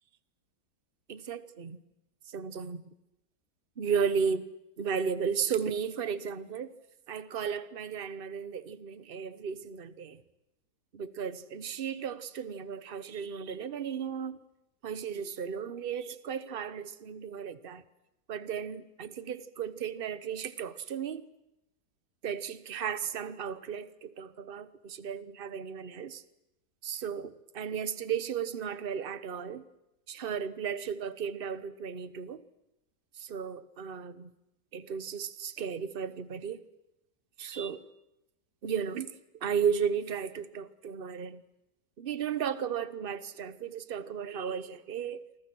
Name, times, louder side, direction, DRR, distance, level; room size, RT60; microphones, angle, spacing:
voice 1, 1.1-1.8 2.3-2.8 3.8-4.4 4.8-6.7 7.1-10.2 10.9-14.4 14.8-17.8 18.3-21.3 22.2-26.2 26.8-29.6 30.1-32.4 33.2-34.3 34.7-36.6 37.4-37.9 38.6-39.1 39.4-41.4 42.0-45.2, right 7 dB, 40° right, 13 dB, 1.0 m, -34 dB
28.0 x 25.0 x 6.2 m, 0.94 s
omnidirectional pair, 1.8 m